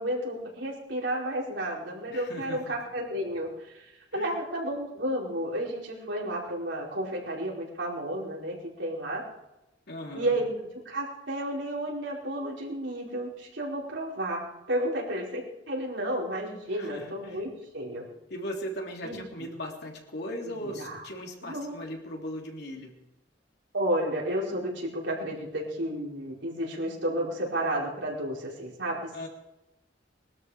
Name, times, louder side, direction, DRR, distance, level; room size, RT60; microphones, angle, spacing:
voice 1, 0.0-9.2 10.1-10.5 10.8-18.1 19.0-19.5 20.4-21.1 21.4-21.7 23.7-29.3, right 1 dB, 75° right, -3 dB, 5.0 m, -32 dB
voice 2, 2.1-2.7 4.1-4.4 9.9-10.4 16.7-17.4 18.3-23.0 29.1-29.3, equal, 65° left, 1 dB, 3.4 m, -38 dB
21.5 x 13.0 x 5.0 m, 0.94 s
head